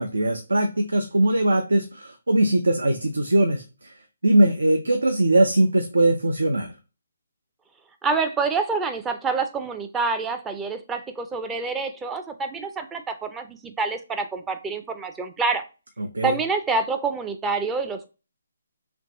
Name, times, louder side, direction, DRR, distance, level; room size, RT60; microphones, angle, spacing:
voice 1, 0.0-3.9 4.2-6.7 16.0-16.4, right 1 dB, 85° right, 6 dB, 0.5 m, -21 dB
voice 2, 8.0-15.6 16.2-18.1, right 4 dB, 10° right, 7 dB, 0.4 m, -27 dB
3.4 x 2.9 x 2.9 m, 0.31 s
figure-of-eight pair, 145°, 0 cm